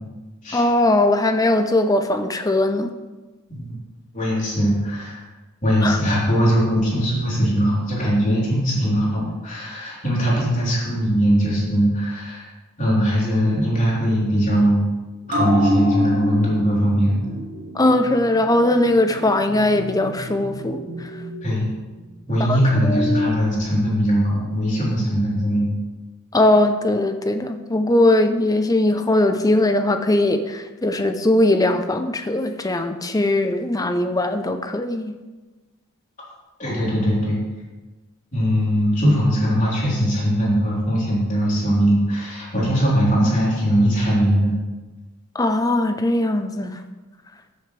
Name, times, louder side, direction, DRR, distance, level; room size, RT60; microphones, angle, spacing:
voice 1, 0.5-3.0 5.8-6.0 17.7-21.1 22.4-23.4 26.3-35.2 45.3-46.8, left 1 dB, 15° left, 7 dB, 0.6 m, -20 dB
voice 2, 4.1-5.2 5.6-12.5 12.8-14.8 15.3-17.2 21.4-21.7 22.3-25.7 36.6-37.4 38.3-44.5, equal, 35° left, -6 dB, 3.7 m, -20 dB
sound 1, 15.3-22.2 22.5-22.6, left 1 dB, 40° right, 2.9 m, -28 dB
14.0 x 7.9 x 3.3 m, 1.2 s
head